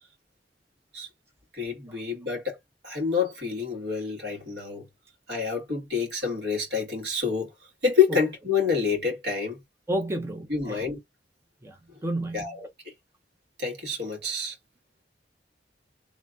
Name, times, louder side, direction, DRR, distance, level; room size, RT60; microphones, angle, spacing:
voice 1, 1.5-2.6 2.8-4.8 5.3-7.5 7.8-9.6 10.5-11.0 12.3-12.7 13.6-14.6, left 6 dB, 65° right, 1.8 m, -27 dB
voice 2, 9.9-10.8 11.6-12.6, right 1 dB, 15° right, 0.5 m, -31 dB
3.1 x 2.4 x 3.7 m
head